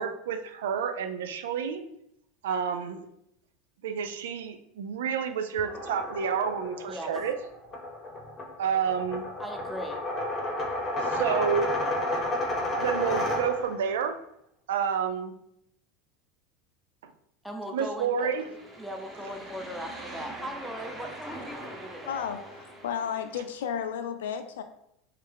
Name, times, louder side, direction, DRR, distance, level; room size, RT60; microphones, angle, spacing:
voice 1, 0.0-1.8 2.4-3.0 3.8-7.4 8.6-9.3 11.0-11.7 12.8-14.2 14.7-15.3 17.0-17.1 17.7-18.5, right 7 dB, 80° right, 8 dB, 0.4 m, -29 dB
sound 1, 5.6-13.9, left 1 dB, 30° left, 0.8 m, -31 dB
voice 2, 9.4-10.0 17.4-18.3 18.8-22.3, equal, ahead, 3 dB, 0.7 m, -39 dB
sound 2, 18.2-23.6, right 1 dB, 15° right, 1.2 m, -43 dB
voice 3, 22.1-24.6, left 8 dB, 80° left, 7 dB, 0.3 m, -33 dB
3.3 x 3.2 x 3.4 m, 0.76 s
hypercardioid pair, 95°, 0 cm